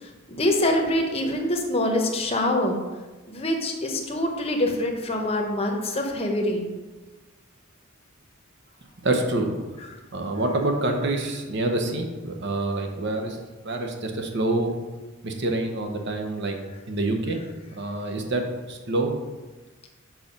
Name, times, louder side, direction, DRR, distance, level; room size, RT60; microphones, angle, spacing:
voice 1, 0.3-2.8 3.3-6.7, left 1 dB, 30° left, 2 dB, 0.9 m, -25 dB
voice 2, 9.0-9.6 10.1-13.4 13.6-14.7 15.2-16.6 16.9-17.4 17.7-18.4 18.7-19.1, right 2 dB, 55° right, 3 dB, 0.9 m, -26 dB
5.9 x 4.7 x 5.2 m, 1.2 s
head